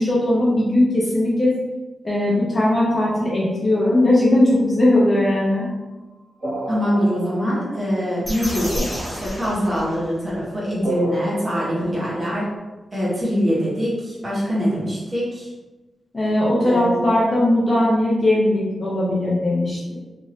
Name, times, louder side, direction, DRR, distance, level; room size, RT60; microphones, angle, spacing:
voice 1, 0.0-1.5 2.0-5.7 11.8-11.9 16.1-19.9, left 1 dB, 25° left, -5 dB, 0.6 m, -19 dB
sound 1, 5.4-8.7 10.8-12.6, right 1 dB, 40° right, 1.3 m, -32 dB
voice 2, 6.7-12.4 12.9-15.5 16.5-17.1, equal, 20° right, -7 dB, 1.1 m, -23 dB
sound 2, 8.2-10.4, equal, ahead, 0.8 m, -30 dB
2.5 x 2.5 x 3.3 m, 1.1 s
wide cardioid pair, 160°, 0 cm